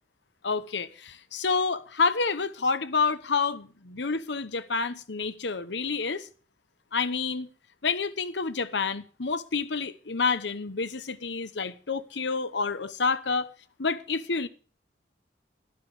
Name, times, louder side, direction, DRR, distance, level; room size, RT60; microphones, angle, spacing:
voice 1, 0.4-6.3 6.9-7.5 7.8-13.5 13.8-14.5, left 4 dB, 75° left, 1.0 m, -28 dB
12.0 x 11.5 x 4.9 m
head